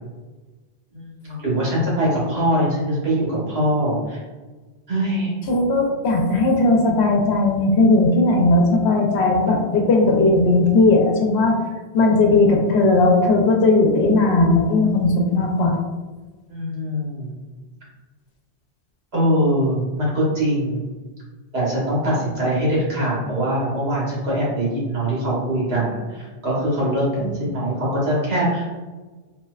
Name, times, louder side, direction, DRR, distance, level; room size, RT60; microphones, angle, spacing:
voice 1, 0.9-4.2 4.9-5.4 10.1-10.3 16.5-17.3 19.1-20.9 21.5-28.9, equal, 75° right, -6 dB, 1.4 m, -22 dB
voice 2, 5.5-11.6 11.9-15.8 27.2-27.3, left 2 dB, 85° left, 0 dB, 0.9 m, -17 dB
4.2 x 2.1 x 2.3 m, 1.3 s
omnidirectional pair, 1.1 m